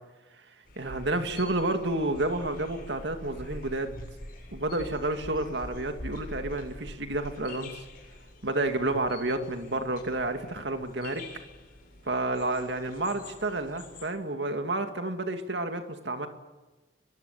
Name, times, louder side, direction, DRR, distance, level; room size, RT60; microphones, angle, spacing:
sound 1, 0.6-14.1, left 1 dB, 45° left, 7.7 m, -45 dB
voice 1, 0.8-4.0 4.5-7.8 8.4-11.2 12.1-16.3, right 2 dB, 65° right, 6 dB, 2.4 m, -30 dB
23.0 x 23.0 x 8.5 m, 1.2 s
head